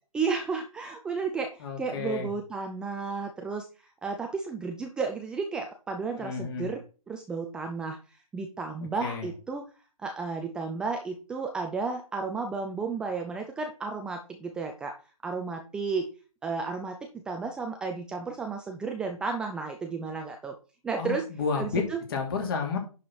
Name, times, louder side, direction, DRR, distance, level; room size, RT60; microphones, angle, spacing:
voice 1, 0.1-9.7 10.0-15.0 15.2-16.1 16.4-20.5 20.8-21.3 21.6-22.0, right 4 dB, 5° right, 3 dB, 0.4 m, -33 dB
voice 2, 1.6-2.3 6.2-6.7 9.0-9.3 21.0-21.8 22.1-22.8, left 5 dB, 40° left, 2 dB, 3.1 m, -31 dB
10.5 x 4.9 x 4.3 m, 0.35 s
figure-of-eight pair, 140°, 18 cm